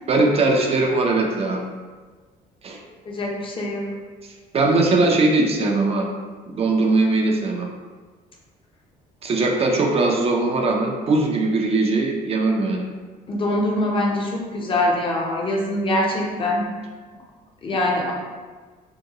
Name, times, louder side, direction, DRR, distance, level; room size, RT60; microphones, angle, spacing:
voice 1, 0.1-1.6 2.6-2.8 4.5-6.1 6.5-7.7 9.2-12.9, right 2 dB, 35° right, 1 dB, 0.5 m, -20 dB
voice 2, 3.1-3.9 13.3-16.7 17.6-18.1, left 1 dB, 30° left, -1 dB, 0.7 m, -23 dB
2.9 x 2.2 x 3.6 m, 1.4 s
cardioid pair, 110°, 17 cm